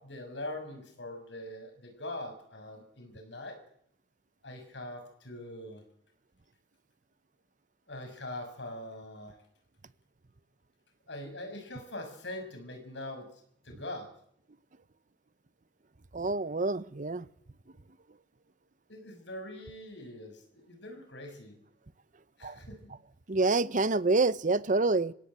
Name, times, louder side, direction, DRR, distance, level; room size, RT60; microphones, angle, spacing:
voice 1, 0.0-3.6 4.4-5.8 7.9-9.4 11.1-14.1 18.9-21.6 22.4-22.9, left 1 dB, 85° left, 6.5 m, -43 dB
voice 2, 16.1-17.2 22.4-22.6 23.3-25.1, right 3 dB, 45° right, 0.9 m, -27 dB
26.5 x 16.5 x 8.9 m
head